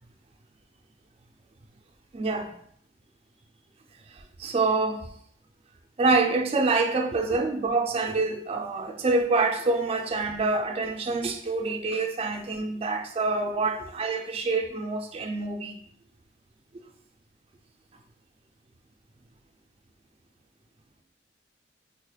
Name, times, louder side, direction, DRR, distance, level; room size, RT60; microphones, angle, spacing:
voice 1, 2.1-2.5 4.4-5.1 6.0-15.8 16.7-16.8, right 3 dB, 35° right, 0.4 m, -26 dB
3.8 x 3.1 x 2.2 m
head